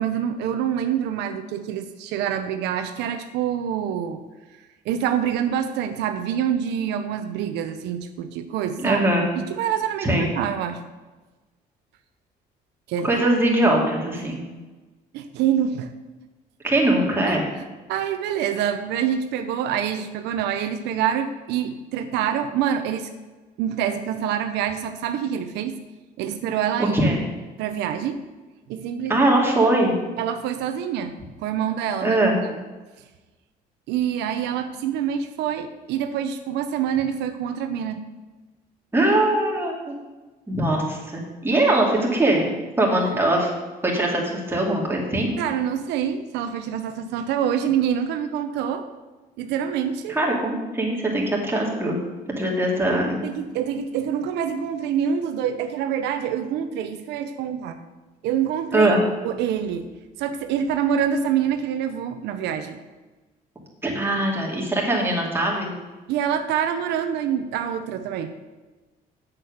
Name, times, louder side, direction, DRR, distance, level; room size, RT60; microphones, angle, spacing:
voice 1, 0.0-4.2 4.6-9.0 9.3-10.8 12.9-13.1 13.6-13.7 14.1-14.2 15.1-15.9 17.3-17.4 17.9-23.1 23.6-25.7 26.2-27.1 27.6-28.2 28.7-29.3 30.2-31.1 31.4-32.2 32.4-32.6 33.9-38.0 45.4-48.8 49.4-50.2 53.2-57.8 58.2-59.0 59.2-59.9 60.2-62.8 66.1-68.3, right 9 dB, 85° right, 8 dB, 0.8 m, -26 dB
voice 2, 8.8-9.2 10.0-10.3 13.0-14.4 16.6-17.4 26.8-27.2 29.1-29.9 32.0-32.4 38.9-39.9 40.5-43.5 43.8-45.3 50.1-52.0 52.4-53.2 58.7-59.0 63.8-65.7, right 1 dB, 15° right, -2 dB, 2.8 m, -21 dB
7.7 x 7.5 x 6.5 m, 1.2 s
cardioid pair, 110°, 17 cm